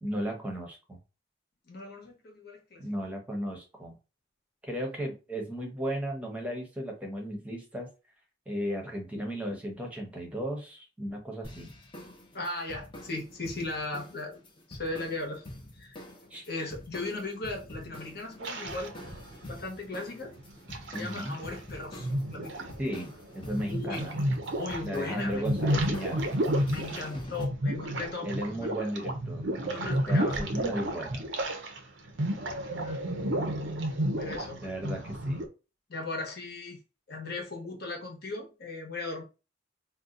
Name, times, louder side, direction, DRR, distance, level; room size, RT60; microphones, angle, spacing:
voice 1, 0.0-1.0 2.8-3.9 4.6-7.9 8.5-11.7 16.3-16.4 20.9-21.3 22.8-24.2 24.8-26.3 28.2-31.3 34.6-35.5, equal, 5° right, 0.8 m, -35 dB
voice 2, 1.7-2.8 12.3-14.4 14.7-15.4 15.7-16.0 16.5-18.9 19.4-20.3 20.9-22.7 23.6-24.1 24.5-25.5 26.7-28.7 29.7-30.4 32.0-33.0 34.2-34.6 35.9-36.8 37.1-39.2, left 2 dB, 50° left, 1.0 m, -37 dB
sound 1, 11.4-27.5, left 1 dB, 25° left, 0.7 m, -46 dB
sound 2, 18.4-19.5 20.2-21.6 21.9-24.8 25.1-31.8 32.1-35.5, right 1 dB, 65° right, 0.6 m, -31 dB
2.7 x 2.2 x 3.7 m
head